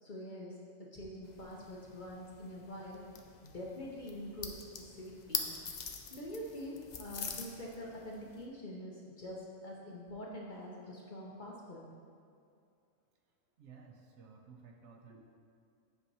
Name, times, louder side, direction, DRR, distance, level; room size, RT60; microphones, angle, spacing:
voice 1, 0.0-3.0 3.4-5.5 6.1-11.9 15.1-15.2, left 1 dB, 45° left, -3 dB, 0.7 m, -45 dB
sound 1, 1.2-8.5, left 6 dB, 70° left, 0.4 m, -44 dB
voice 2, 13.6-15.2, right 5 dB, 65° right, 2 dB, 0.9 m, -55 dB
7.9 x 3.0 x 5.3 m, 2.4 s
omnidirectional pair, 1.4 m